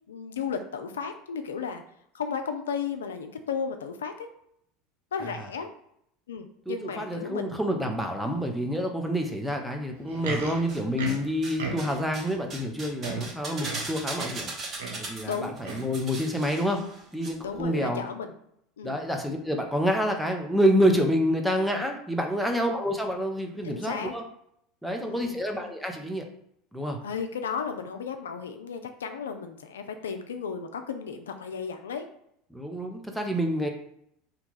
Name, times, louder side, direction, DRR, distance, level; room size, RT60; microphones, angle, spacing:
voice 1, 0.1-1.8 2.1-4.3 5.1-5.7 6.3-7.6 15.3-15.5 17.4-18.3 18.8-19.0 23.6-24.1 24.8-25.4 27.0-32.1, left 6 dB, 85° left, 7 dB, 0.3 m, -34 dB
voice 2, 6.7-14.5 15.0-16.8 17.1-18.0 18.8-24.2 24.8-26.3 26.7-27.0 32.5-33.7, equal, ahead, 3 dB, 0.7 m, -28 dB
Livestock farm animals working animals, 9.9-12.1 12.7-12.8 13.0-14.5 14.8-15.1 15.6-16.0 16.6-16.7, right 4 dB, 80° right, 0.7 m, -36 dB
sound 1, 10.3-11.2 11.4-17.3 17.5-17.6, right 2 dB, 35° right, 1.1 m, -38 dB
2.8 x 2.3 x 3.9 m, 0.73 s
hypercardioid pair, 80°, 0 cm